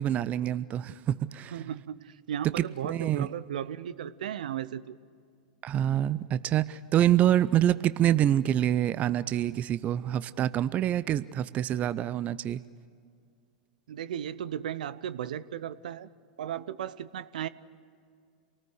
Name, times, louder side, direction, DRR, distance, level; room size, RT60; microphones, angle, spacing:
voice 1, 0.0-1.6 2.8-3.3 5.6-12.6, right 11 dB, 35° right, 16 dB, 0.6 m, -26 dB
voice 2, 1.5-4.9 13.9-16.1 16.4-17.5, right 10 dB, 70° right, 16 dB, 0.8 m, -35 dB
27.5 x 19.0 x 8.1 m, 2.2 s
hypercardioid pair, 105°, 5 cm